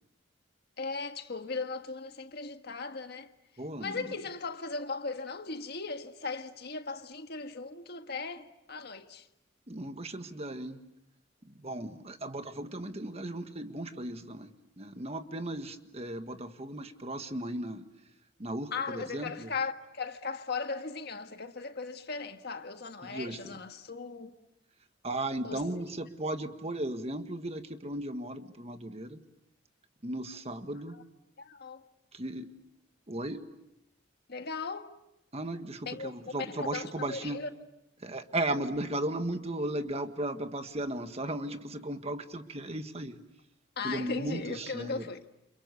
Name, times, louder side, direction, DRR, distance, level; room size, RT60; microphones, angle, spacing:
voice 1, 0.8-3.3 3.8-9.3 18.7-24.4 25.4-25.6 31.4-31.8 34.3-34.9 35.8-37.5 43.8-45.2, left 4 dB, 55° left, 1.6 m, -38 dB
voice 2, 3.6-4.2 9.7-10.8 11.4-17.9 18.4-19.5 23.0-23.5 25.0-29.2 30.0-31.0 32.1-32.6 33.1-33.5 35.3-37.4 38.0-43.2 43.8-45.1, right 1 dB, 35° right, 1.6 m, -36 dB
30.0 x 28.5 x 7.0 m
head